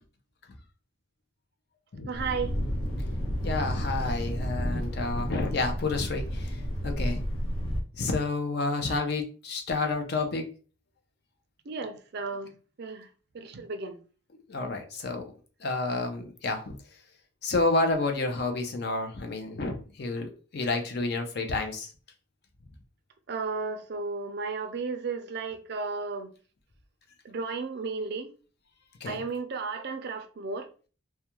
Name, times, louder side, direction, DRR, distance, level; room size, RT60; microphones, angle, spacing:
Thunder, 2.1-7.8, equal, 90° left, 0.8 m, -31 dB
voice 1, 2.1-2.5 11.7-12.5 12.8-13.1 13.3-14.0 23.3-26.3 27.2-28.3 29.0-30.7, right 4 dB, 50° right, 0.4 m, -34 dB
voice 2, 3.4-6.6 6.8-7.2 7.9-10.5 14.5-15.2 15.6-16.7 17.4-21.9 29.0-29.2, left 3 dB, 50° left, 0.5 m, -30 dB
2.3 x 2.2 x 2.9 m
head